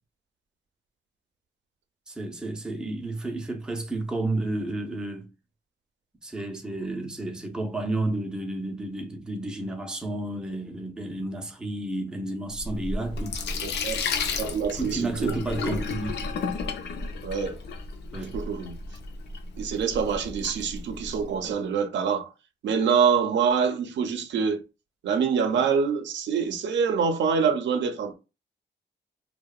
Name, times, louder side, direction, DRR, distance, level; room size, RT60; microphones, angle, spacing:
voice 1, 2.1-5.3 6.2-13.4 14.7-16.2 18.1-18.4, right 2 dB, 5° right, 0.3 m, -31 dB
Sink (filling or washing), 12.5-21.3, left 4 dB, 70° left, 0.4 m, -33 dB
voice 2, 13.6-14.0 14.4-15.7 17.2-17.6 18.3-18.7 19.6-22.3 22.6-24.6 25.0-28.2, right 6 dB, 85° right, 0.5 m, -25 dB
2.7 x 2.1 x 2.2 m
wide cardioid pair, 180°, 19 cm